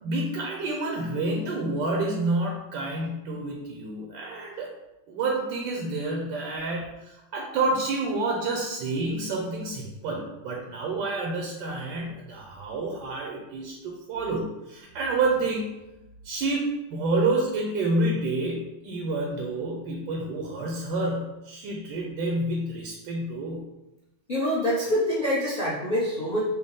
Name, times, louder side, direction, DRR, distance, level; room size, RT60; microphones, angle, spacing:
voice 1, 0.0-4.7 5.1-15.7 16.2-23.7, right 2 dB, 80° right, -1 dB, 1.4 m, -29 dB
voice 2, 24.3-26.5, equal, 35° left, -7 dB, 0.8 m, -25 dB
6.4 x 2.2 x 3.5 m, 0.98 s
omnidirectional pair, 2.0 m